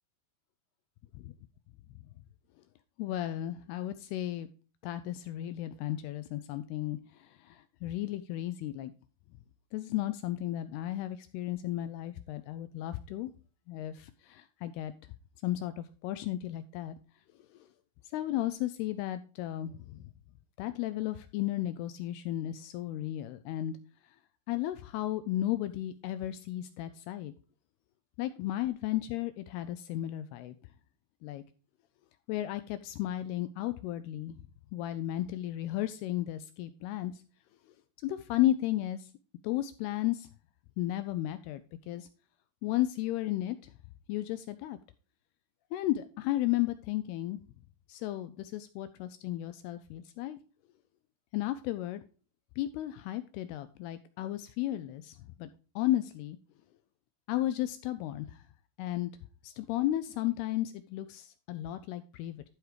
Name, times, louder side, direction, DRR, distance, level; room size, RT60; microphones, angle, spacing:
voice 1, 3.0-4.5 4.8-8.9 9.7-13.3 13.7-14.9 15.4-17.0 18.1-20.0 20.6-23.8 24.5-27.3 28.2-30.6 31.2-31.4 32.3-34.4 34.7-37.2 38.0-39.1 39.4-40.3 40.8-42.1 42.6-43.7 44.1-44.8 45.7-47.4 47.9-50.4 51.3-52.0 52.6-55.5 55.8-56.4 57.3-58.4 58.8-59.1 59.4-62.4, left 14 dB, 85° left, 12 dB, 2.3 m, -34 dB
12.0 x 4.7 x 4.9 m, 0.36 s
omnidirectional pair, 5.0 m